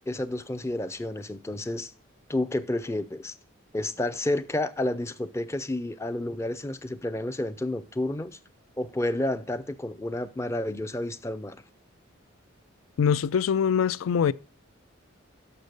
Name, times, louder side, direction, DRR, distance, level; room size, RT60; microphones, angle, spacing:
voice 1, 0.1-1.9 2.3-3.3 3.7-8.4 8.8-11.6, left 1 dB, 15° left, 0.4 m, -30 dB
voice 2, 13.0-14.3, left 7 dB, 85° left, 0.3 m, -23 dB
6.8 x 6.2 x 6.4 m
head